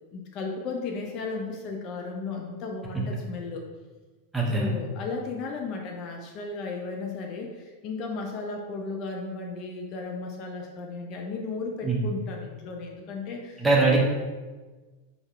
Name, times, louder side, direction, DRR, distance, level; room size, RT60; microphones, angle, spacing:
voice 1, 0.0-3.6 4.5-13.7, left 3 dB, 40° left, 1 dB, 0.5 m, -35 dB
voice 2, 4.3-4.7 11.8-12.0 13.6-14.0, right 3 dB, 5° right, -3 dB, 0.9 m, -22 dB
4.6 x 3.9 x 2.4 m, 1.3 s
figure-of-eight pair, 90°, 0 cm